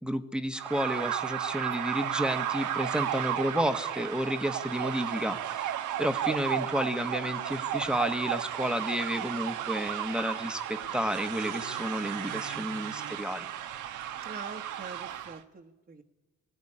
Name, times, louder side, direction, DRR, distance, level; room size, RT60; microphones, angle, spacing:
voice 1, 0.0-13.5, equal, 5° right, 8 dB, 1.3 m, -31 dB
sound 1, 0.6-15.4, right 11 dB, 80° right, 1.2 m, -34 dB
voice 2, 14.2-16.0, right 4 dB, 35° right, 2 dB, 1.4 m, -44 dB
18.0 x 16.5 x 10.0 m, 1.2 s
cardioid pair, 90°, 30 cm